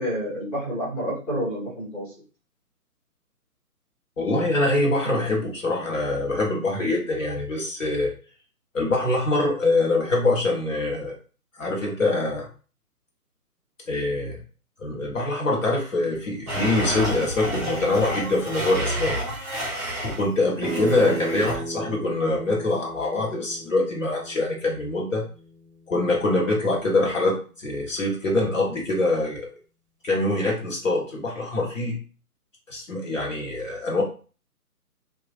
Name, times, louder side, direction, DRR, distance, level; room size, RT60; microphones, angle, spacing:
voice 1, 0.0-2.1 21.3-21.4, equal, 20° left, -10 dB, 1.3 m, -29 dB
voice 2, 4.2-8.1 8.7-11.1 11.6-12.5 13.9-14.4 14.8-19.2 20.0-25.2 25.9-29.5 30.0-32.0 32.7-34.0, left 2 dB, 55° left, -2 dB, 0.9 m, -24 dB
Domestic sounds home sounds, 16.5-20.3 20.6-21.6, equal, 5° right, 0.9 m, -30 dB
sound 1, 20.6-26.2, right 2 dB, 50° right, 0.5 m, -36 dB
2.9 x 2.4 x 2.4 m, 0.37 s
figure-of-eight pair, 145°, 46 cm